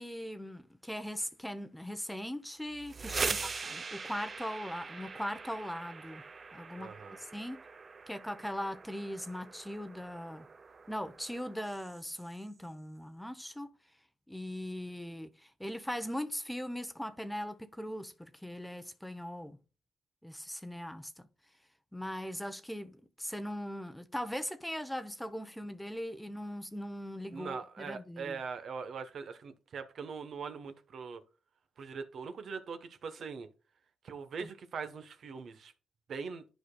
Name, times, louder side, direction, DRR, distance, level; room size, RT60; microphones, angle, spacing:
voice 1, 0.0-6.2 6.5-6.9 7.2-7.6 8.1-10.5 10.9-13.7 14.3-19.6 20.2-21.1 21.9-28.4, equal, 5° left, 0.7 m, -40 dB
sound 1, 2.7-12.5, right 4 dB, 35° right, 0.5 m, -42 dB
voice 2, 3.1-3.5 6.8-7.2 27.3-31.2 31.8-33.5 34.0-35.7 36.1-36.4, right 5 dB, 55° right, 0.9 m, -42 dB
11.0 x 4.9 x 2.2 m
cardioid pair, 90°, 0 cm